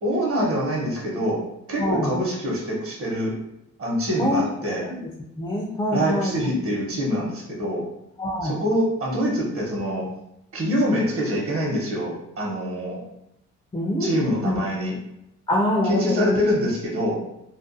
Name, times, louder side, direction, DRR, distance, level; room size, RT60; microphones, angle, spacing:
voice 1, 0.0-3.4 3.8-4.9 5.9-7.9 8.4-10.1 10.5-13.0 14.0-15.0 15.8-17.2, equal, 50° right, -2 dB, 0.9 m, -25 dB
voice 2, 1.8-2.1 4.2-4.7 5.4-6.5 8.2-8.6 13.7-14.1 14.4-14.6 15.5-16.4, left 1 dB, 15° left, -2 dB, 0.3 m, -24 dB
2.4 x 2.2 x 2.6 m, 0.83 s
cardioid pair, 90°, 30 cm